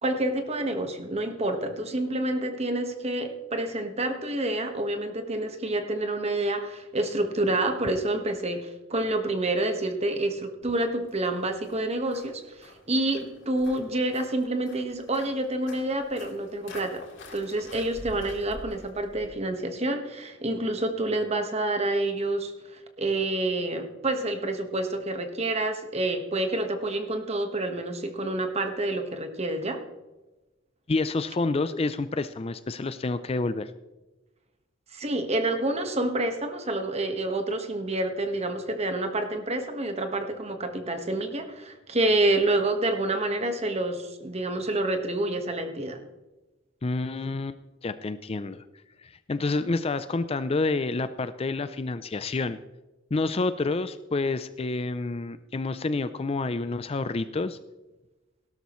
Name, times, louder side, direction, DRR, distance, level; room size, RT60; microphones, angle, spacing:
voice 1, 0.0-17.1 17.3-29.8 34.9-46.0, right 2 dB, 30° right, 6 dB, 1.4 m, -28 dB
Walk footsteps, 10.6-19.3, left 2 dB, 60° left, 3.9 m, -47 dB
voice 2, 30.9-33.7 46.8-48.6 49.0-52.6 53.1-57.6, left 3 dB, 30° left, 12 dB, 0.4 m, -28 dB
17.0 x 12.5 x 3.1 m, 1.1 s
head